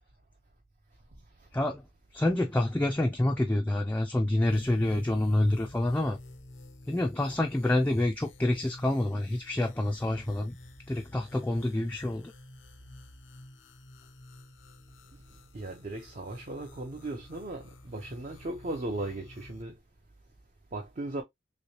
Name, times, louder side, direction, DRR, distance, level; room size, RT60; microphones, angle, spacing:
voice 1, 1.5-1.8 2.1-6.2 6.9-10.5 10.9-12.3, left 1 dB, 10° left, 0.4 m, -27 dB
sound 1, 4.2-19.6, left 1 dB, 80° left, 0.6 m, -50 dB
voice 2, 15.5-19.8 20.7-21.2, right 2 dB, 40° right, 0.6 m, -37 dB
3.1 x 3.1 x 2.8 m
head